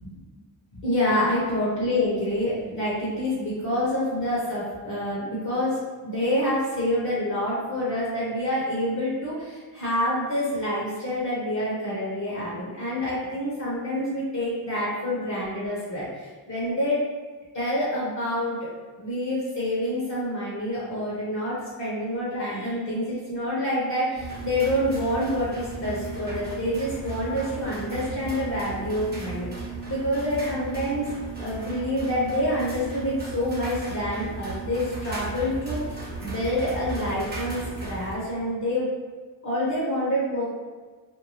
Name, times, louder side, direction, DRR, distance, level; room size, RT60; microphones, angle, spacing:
voice 1, 0.7-17.0 17.5-18.7 19.0-31.0 31.4-38.9 39.4-40.4, left 1 dB, 45° left, -8 dB, 1.0 m, -27 dB
sound 1, 24.1-38.1, right 3 dB, 25° right, 1.0 m, -35 dB
2.6 x 2.2 x 3.1 m, 1.4 s
wide cardioid pair, 85°, 41 cm